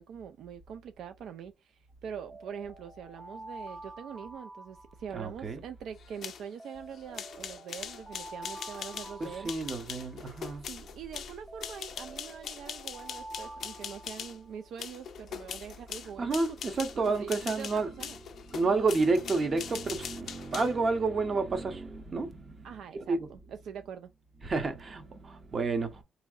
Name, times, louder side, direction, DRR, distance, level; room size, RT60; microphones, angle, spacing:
voice 1, 0.0-9.5 10.7-16.4 16.8-18.2 22.6-24.1, right 7 dB, 75° right, 0.3 m, -44 dB
sound 1, 2.3-5.5 6.6-10.4 11.5-14.7, right 2 dB, 20° right, 0.6 m, -48 dB
voice 2, 5.1-5.6 9.2-10.6 16.0-18.0 18.4-23.3 24.4-26.0, right 3 dB, 40° right, 0.9 m, -30 dB
sound 2, 6.0-14.4 14.8-20.8, left 8 dB, 65° left, 0.5 m, -42 dB
3.7 x 3.0 x 2.5 m
cardioid pair, 90°, 0 cm